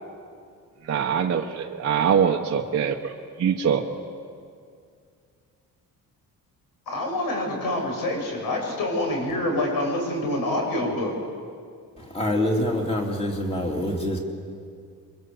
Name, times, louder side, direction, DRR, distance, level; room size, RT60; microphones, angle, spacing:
voice 1, 0.9-1.4 1.7-3.8, right 7 dB, 40° right, 0 dB, 1.2 m, -23 dB
voice 2, 6.9-11.1, left 1 dB, 65° left, 1 dB, 7.6 m, -26 dB
voice 3, 12.0-14.2, left 1 dB, 15° left, 1 dB, 3.2 m, -25 dB
28.0 x 24.0 x 7.9 m, 2.2 s
cardioid pair, 175°, 37 cm